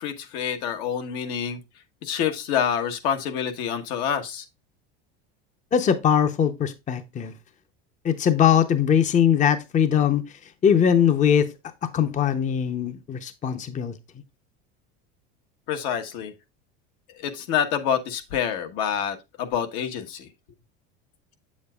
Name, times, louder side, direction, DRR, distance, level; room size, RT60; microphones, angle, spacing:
voice 1, 0.0-1.6 2.0-4.4 15.7-16.3 17.1-20.3, left 8 dB, 70° left, 1.3 m, -27 dB
voice 2, 5.7-7.3 8.0-10.2 10.6-11.5 11.9-14.0, left 8 dB, 25° left, 0.7 m, -21 dB
7.7 x 7.2 x 2.3 m
supercardioid pair, 115°, 31 cm